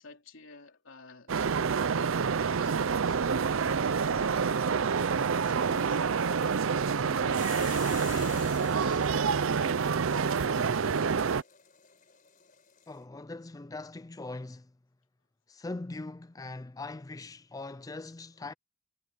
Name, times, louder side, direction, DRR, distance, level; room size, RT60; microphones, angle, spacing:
voice 1, 0.0-1.3 2.6-6.0 6.4-11.3, left 3 dB, 60° left, 3.9 m, -52 dB
sound 1, 1.3-11.4, right 5 dB, 65° right, 0.5 m, -27 dB
sound 2, 7.3-13.0, left 10 dB, 40° left, 4.9 m, -49 dB
voice 2, 12.9-14.7 15.5-18.5, left 2 dB, 15° left, 0.4 m, -41 dB
head